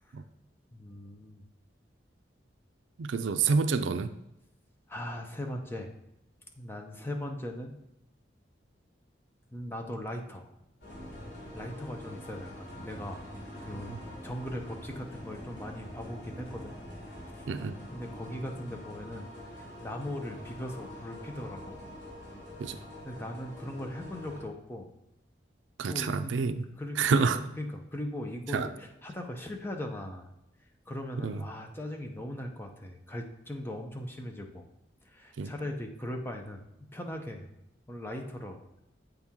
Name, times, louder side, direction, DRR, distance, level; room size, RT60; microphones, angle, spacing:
voice 1, 0.7-1.4 4.9-5.9 6.6-7.7 9.5-10.5 11.5-13.2 13.6-16.8 17.9-21.8 23.0-24.9 25.9-26.3 26.8-30.3 30.9-34.7 35.1-36.6 36.9-37.5 37.9-38.6, left 1 dB, 10° left, 3 dB, 0.6 m, -39 dB
voice 2, 3.0-4.1 13.9-14.0 17.5-17.8 22.6-22.8 25.8-26.7 27.0-27.4 28.5-28.7 31.2-31.4 35.4-35.5, right 5 dB, 85° right, 10 dB, 0.4 m, -28 dB
sound 1, 10.8-24.4, left 1 dB, 60° left, 2.6 m, -45 dB
7.9 x 4.4 x 3.6 m, 0.86 s
head